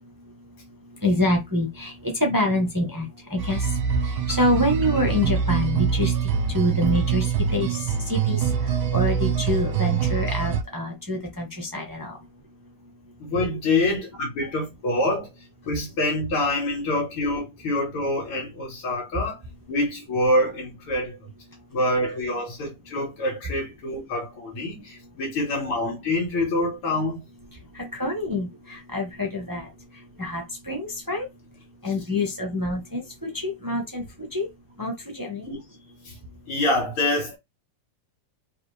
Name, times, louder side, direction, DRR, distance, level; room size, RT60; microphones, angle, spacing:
voice 1, 1.0-3.6 4.3-6.1 6.5-7.3 7.5-7.8 8.1-8.4 8.9-12.1 27.8-29.7 30.2-31.3 31.8-34.0 34.3-34.5 34.8-35.5, left 1 dB, 20° right, 0.5 m, -26 dB
sound 1, 3.4-10.6, right 7 dB, 60° right, 1.1 m, -24 dB
voice 2, 13.2-15.3 15.6-19.4 19.7-21.3 21.7-27.2 35.4-35.6 36.0-36.1 36.5-37.4, left 1 dB, 75° left, 2.4 m, -26 dB
4.9 x 3.1 x 3.3 m
omnidirectional pair, 2.4 m